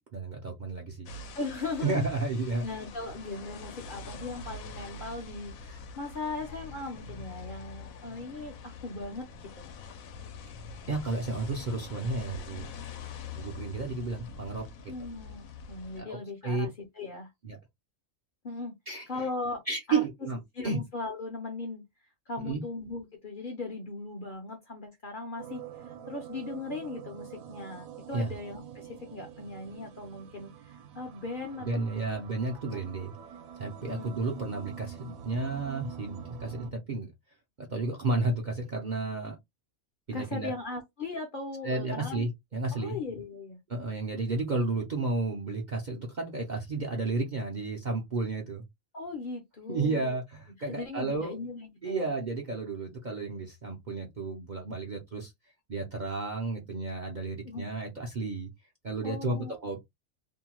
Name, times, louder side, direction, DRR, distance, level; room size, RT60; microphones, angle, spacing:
voice 1, 0.1-1.1 1.8-2.6 10.9-12.7 13.3-14.9 16.0-16.2 16.4-16.7 17.4-17.6 18.9-19.3 19.7-20.4 20.6-20.8 22.4-22.6 28.1-28.3 31.6-33.1 33.6-37.1 37.6-39.4 40.1-40.5 41.6-43.0 43.7-48.6 49.7-51.4 51.8-55.3 55.7-58.5 58.8-59.9, right 3 dB, 50° right, 0.6 m, -32 dB
sound 1, 1.1-16.0, left 4 dB, 80° left, 1.0 m, -44 dB
voice 2, 1.4-2.0 2.6-9.3 9.6-9.7 14.9-17.3 18.4-18.7 19.1-19.6 19.9-20.0 20.5-21.8 22.3-32.2 32.7-32.8 33.9-34.2 40.1-42.3 42.7-43.6 48.9-50.2 50.6-52.1 57.4-57.6 59.0-59.6, left 3 dB, 50° left, 0.7 m, -38 dB
sound 2, 25.4-36.7, right 8 dB, 80° right, 1.0 m, -46 dB
2.6 x 2.2 x 2.9 m
omnidirectional pair, 1.4 m